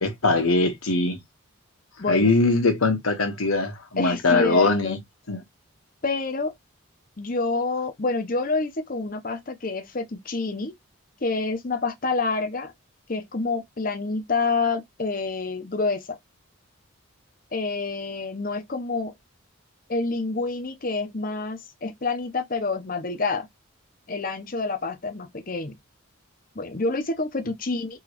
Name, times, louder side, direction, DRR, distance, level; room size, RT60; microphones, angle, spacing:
voice 1, 0.0-1.2 2.1-5.0 5.3-5.4, left 3 dB, 90° left, 1.3 m, -22 dB
voice 2, 2.0-2.3 4.0-5.0 6.0-6.5 7.2-10.7 11.2-12.7 13.1-16.2 17.5-19.1 19.9-23.5 24.1-25.8 26.6-28.0, left 3 dB, 40° left, 0.7 m, -27 dB
3.9 x 3.0 x 3.0 m
head